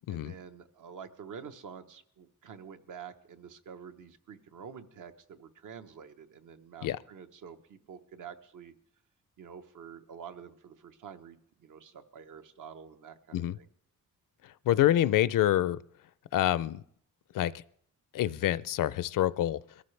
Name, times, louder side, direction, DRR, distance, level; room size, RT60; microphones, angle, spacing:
voice 1, 0.1-8.7 9.4-13.7, right 7 dB, 70° right, 8 dB, 1.0 m, -48 dB
voice 2, 14.7-15.8 16.3-16.8 17.3-17.5 18.1-19.6, left 12 dB, 75° left, 17 dB, 0.5 m, -26 dB
21.5 x 13.5 x 3.3 m, 0.65 s
wide cardioid pair, 160°, 33 cm